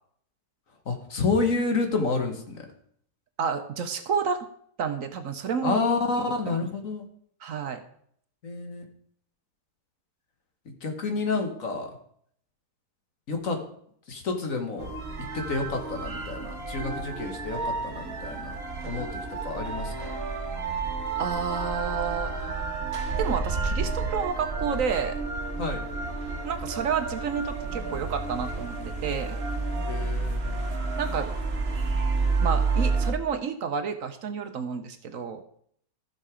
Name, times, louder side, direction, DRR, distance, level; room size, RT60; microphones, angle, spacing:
voice 1, 0.8-2.6 5.6-7.0 8.4-8.8 10.6-11.9 13.3-13.6 14.1-14.9 15.3-19.1 19.4-20.1 25.6-25.8 29.9-30.6, left 3 dB, 55° left, 5 dB, 1.8 m, -29 dB
voice 2, 3.4-4.5 4.8-5.8 6.5-6.6 7.4-7.8 21.2-22.3 23.2-25.2 26.4-29.4 31.0-31.3 32.4-35.4, right 6 dB, 60° right, 8 dB, 1.1 m, -30 dB
sound 1, 14.8-33.1, right 3 dB, 45° right, 1.4 m, -30 dB
14.5 x 5.9 x 4.9 m, 0.66 s
omnidirectional pair, 1.7 m